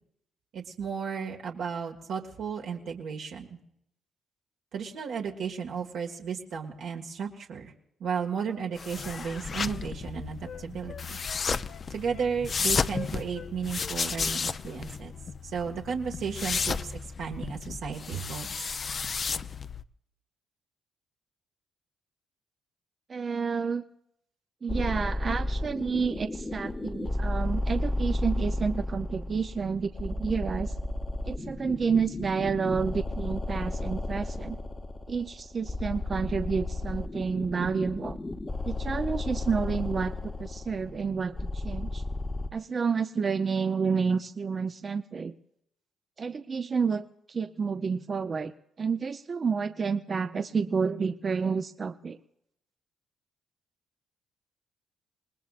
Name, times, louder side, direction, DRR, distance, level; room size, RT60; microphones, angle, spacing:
voice 1, 0.5-3.6 4.7-7.7 8.0-11.2 11.9-15.1 15.4-18.8, right 6 dB, 75° right, 0 dB, 1.9 m, -34 dB
Wind instrument woodwind instrument, 8.8-13.5 13.8-14.8 15.1-15.3, left 6 dB, 65° left, 1.2 m, -46 dB
sound 1, 8.8-19.8, left 5 dB, 40° left, 0.5 m, -33 dB
voice 2, 23.1-23.8 24.6-30.7 31.3-34.6 35.1-38.2 38.7-40.1 40.4-42.0 42.5-45.3 46.2-48.5 48.8-52.2, right 5 dB, 40° right, 9 dB, 0.6 m, -30 dB
sound 2, 24.7-42.5, left 2 dB, 20° left, 0.9 m, -33 dB
27.0 x 19.5 x 2.5 m, 0.75 s
cardioid pair, 90°, 0 cm